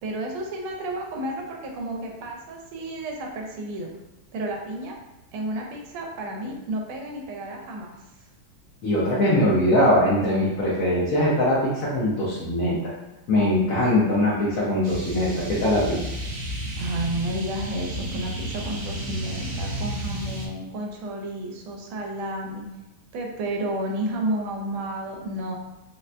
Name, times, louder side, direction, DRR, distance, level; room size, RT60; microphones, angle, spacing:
voice 1, 0.0-3.9 4.3-5.0 5.3-8.0 16.8-22.7 23.1-25.6, right 1 dB, 90° right, 0 dB, 1.4 m, -31 dB
voice 2, 8.8-12.9 13.3-16.0, left 1 dB, 80° left, -7 dB, 0.7 m, -21 dB
sound 1, 14.8-20.5, right 1 dB, 65° right, 1.1 m, -32 dB
3.9 x 2.1 x 2.4 m, 0.99 s
omnidirectional pair, 2.2 m